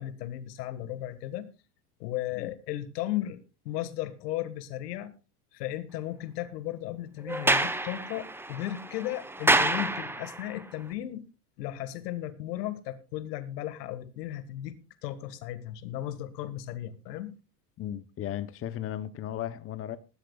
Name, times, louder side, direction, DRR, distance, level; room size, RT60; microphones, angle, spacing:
voice 1, 0.0-1.5 2.0-5.1 5.5-11.3 11.6-17.3, left 13 dB, 85° left, 1.7 m, -35 dB
Sliding door, 7.3-10.5, right 2 dB, 5° right, 0.9 m, -28 dB
voice 2, 17.8-20.0, left 11 dB, 30° left, 0.8 m, -35 dB
20.0 x 11.5 x 2.3 m
supercardioid pair, 115°, 47 cm